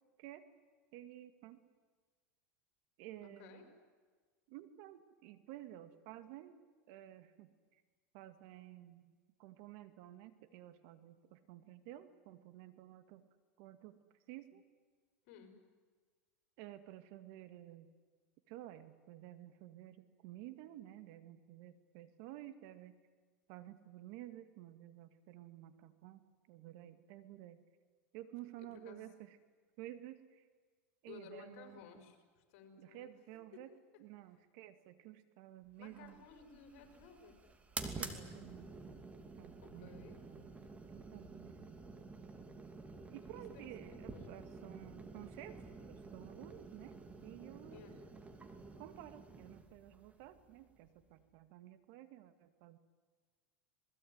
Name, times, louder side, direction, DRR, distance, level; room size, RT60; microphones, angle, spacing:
voice 1, 0.9-1.6 3.0-3.7 4.5-6.6 6.9-7.8 8.1-13.3 13.6-14.0 14.3-14.6 16.6-17.9 18.5-23.0 23.5-27.6 28.1-29.4 29.8-30.5 31.0-32.0 32.8-33.7 34.0-36.3 38.0-38.7 39.3-40.5 40.9-41.8 43.1-47.9 48.8-52.8, right 14 dB, 60° right, 11 dB, 2.0 m, -53 dB
voice 2, 3.2-3.6 15.3-15.5 28.6-29.1 31.1-33.1 33.5-33.7 35.8-37.3 39.6-40.2 43.8-44.3 47.7-48.0, left 7 dB, 65° left, 6 dB, 5.5 m, -56 dB
sound 1, 35.9-51.2, right 3 dB, 20° right, 2.7 m, -50 dB
27.0 x 20.5 x 9.6 m, 1.4 s
supercardioid pair, 120°, 8 cm